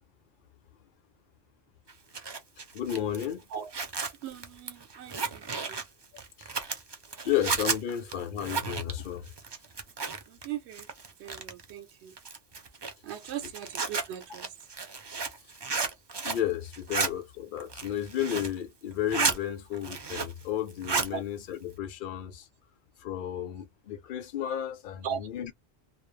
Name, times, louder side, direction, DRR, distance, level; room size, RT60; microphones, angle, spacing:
Zipper (clothing), 1.9-10.5 10.7-11.7 12.2-16.5 16.7-17.1 17.6-18.6 18.9-19.4 19.7-20.4 20.7-21.1, right 4 dB, 45° right, 0.3 m, -33 dB
voice 1, 2.7-3.4 6.4-6.5 7.2-9.3 16.2-22.5 23.0-25.5, left 10 dB, 60° left, 0.7 m, -33 dB
voice 2, 4.2-5.8 7.1-7.2 10.3-10.9 11.2-12.2 13.0-14.5 21.1-21.2 25.0-25.3, right 9 dB, 90° right, 0.8 m, -39 dB
2.2 x 2.0 x 3.0 m
omnidirectional pair, 1.1 m